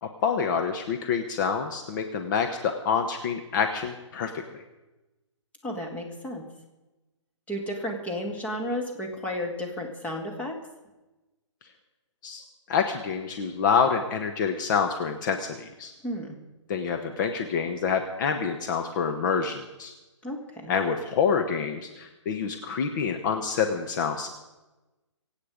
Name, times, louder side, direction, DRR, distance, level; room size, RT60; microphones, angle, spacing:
voice 1, 0.0-4.6 12.2-12.4 12.7-15.9 16.7-19.9 20.7-24.3, left 6 dB, 40° left, 5 dB, 1.1 m, -27 dB
voice 2, 5.6-6.4 7.5-10.5 16.0-16.4 20.2-20.7, left 1 dB, 10° left, 0 dB, 2.2 m, -33 dB
24.5 x 8.8 x 5.1 m, 1.1 s
hypercardioid pair, 145°, 16 cm